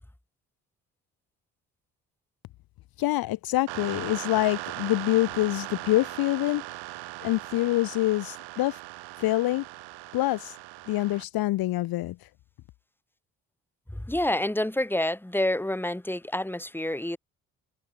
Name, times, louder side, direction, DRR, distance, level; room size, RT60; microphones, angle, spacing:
voice 1, 3.0-6.6 7.2-8.8 9.2-9.6 10.1-10.5 10.9-12.3, left 16 dB, 60° left, 1.3 m, -26 dB
sound 1, 3.7-11.2, right 23 dB, 65° right, 1.1 m, -39 dB
voice 2, 13.9-17.2, left 1 dB, 5° left, 2.8 m, -28 dB
figure-of-eight pair, 45°, 42 cm